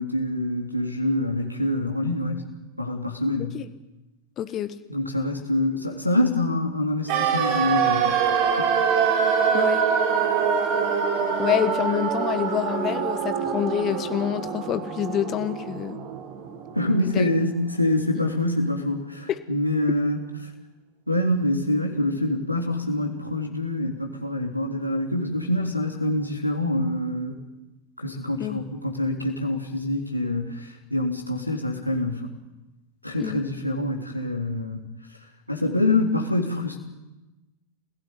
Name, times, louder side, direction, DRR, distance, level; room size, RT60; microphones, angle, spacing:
voice 1, 0.0-2.4 2.8-3.6 4.9-8.2 8.6-8.7 16.7-20.2 21.1-27.4 28.0-32.3 33.0-34.8 35.5-36.8, left 1 dB, 90° left, 0 dB, 3.4 m, -25 dB
voice 2, 4.4-4.7 9.5-9.8 11.4-16.0 17.1-17.3 19.3-19.4 28.4-28.6 33.2-33.4, left 10 dB, 30° left, 11 dB, 1.4 m, -27 dB
sound 1, 7.1-17.0 17.3-17.4, right 6 dB, 45° right, 3.8 m, -24 dB
27.0 x 17.0 x 9.8 m, 1.1 s
figure-of-eight pair, 90°, 0 cm